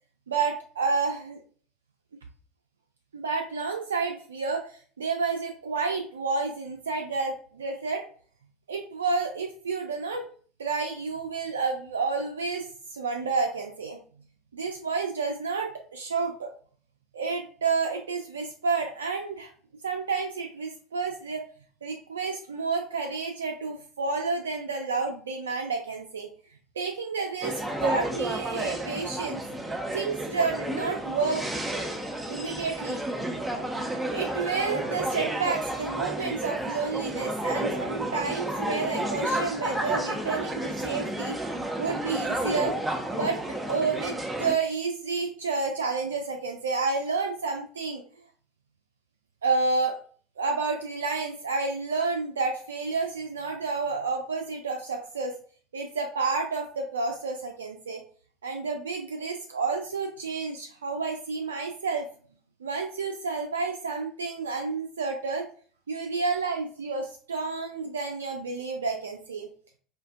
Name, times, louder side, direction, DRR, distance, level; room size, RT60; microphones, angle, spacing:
voice 1, 0.3-1.4 3.1-4.6 5.0-8.0 8.7-10.2 10.6-12.7 12.9-14.0 14.5-16.5 17.1-19.5 19.8-21.4 21.8-26.3 26.8-29.4 29.9-31.4 32.3-33.0 34.1-41.4 41.8-42.8 43.1-43.4 43.7-48.0 49.4-50.0 50.4-55.3 55.7-58.0 58.4-62.1 62.6-65.5 65.9-69.5, right 4 dB, 75° right, 3 dB, 0.4 m, -30 dB
sound 1, 27.4-44.5, right 1 dB, 10° right, 0.6 m, -31 dB
4.3 x 2.4 x 2.3 m, 0.43 s
figure-of-eight pair, 70°, 0 cm